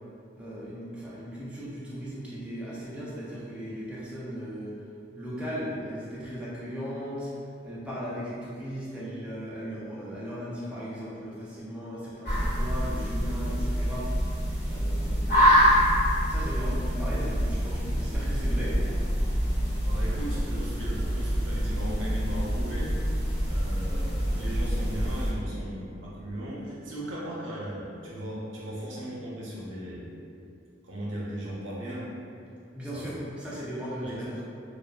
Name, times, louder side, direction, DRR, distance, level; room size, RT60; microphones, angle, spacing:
voice 1, 0.4-4.7 5.2-7.3 7.6-14.1 14.6-15.8 16.3-18.7 19.2-19.3 32.7-34.4, equal, 5° right, -9 dB, 0.4 m, -37 dB
sound 1, 12.2-25.3, equal, 65° left, 1.2 m, -26 dB
voice 2, 19.8-22.9 23.5-30.2 30.8-32.1 32.9-33.1 34.0-34.3, equal, 90° right, -6 dB, 0.6 m, -37 dB
2.5 x 2.3 x 2.3 m, 2.5 s
head